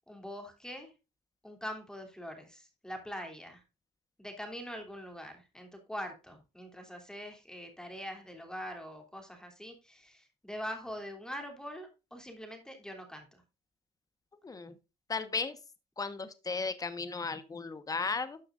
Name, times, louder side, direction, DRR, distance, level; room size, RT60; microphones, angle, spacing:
voice 1, 0.1-0.9 1.4-3.6 4.2-13.4, equal, 5° left, 4 dB, 3.0 m, -43 dB
voice 2, 14.4-14.7 15.1-15.6 16.0-18.4, left 4 dB, 20° left, 11 dB, 1.2 m, -35 dB
12.5 x 6.9 x 2.5 m, 0.29 s
cardioid pair, 110°, 17 cm